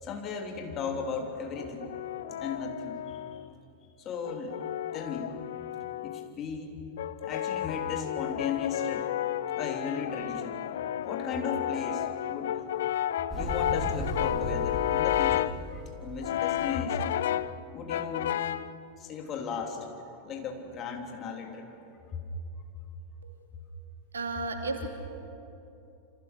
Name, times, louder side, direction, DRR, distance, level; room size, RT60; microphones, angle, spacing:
voice 1, 0.0-1.9 2.4-3.4 4.0-4.6 4.9-5.3 6.0-6.7 7.2-9.1 9.6-10.6 11.0-12.6 13.3-17.2 17.7-18.4 19.0-19.9 20.2-21.7 22.1-22.2, left 5 dB, 30° left, 3 dB, 3.2 m, -36 dB
Brass instrument, 1.6-3.5 4.3-6.3 7.0-15.6 16.2-17.6 17.9-18.7, left 12 dB, 60° left, 0.6 m, -32 dB
Motorcycle, 13.3-17.2, equal, 5° right, 5.0 m, -37 dB
voice 2, 24.1-24.9, right 3 dB, 70° right, 4 dB, 2.9 m, -33 dB
28.5 x 26.5 x 6.8 m, 2.9 s
figure-of-eight pair, 90°, 0 cm